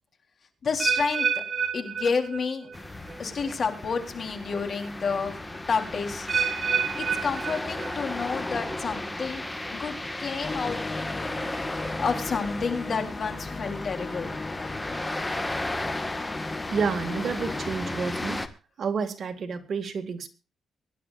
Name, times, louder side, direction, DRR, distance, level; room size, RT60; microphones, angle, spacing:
voice 1, 0.6-1.4 1.7-2.7 3.2-5.4 5.7-6.3 7.0-9.4 9.7-10.8 12.0-14.4, left 5 dB, 50° left, 5 dB, 3.5 m, -30 dB
sound 1, 0.8-2.8 3.1-3.5 4.2-4.3 6.3-8.2 8.6-9.0 9.6-9.7, right 6 dB, 35° right, 2.0 m, -29 dB
sound 2, 2.7-18.5, left 1 dB, 15° left, 1.4 m, -35 dB
sound 3, 10.4-17.7, left 3 dB, 30° left, 1.2 m, -37 dB
voice 2, 16.7-18.5 18.8-20.3, right 5 dB, 55° right, 7 dB, 1.9 m, -30 dB
23.5 x 11.0 x 2.4 m, 0.32 s
cardioid pair, 115°, 0 cm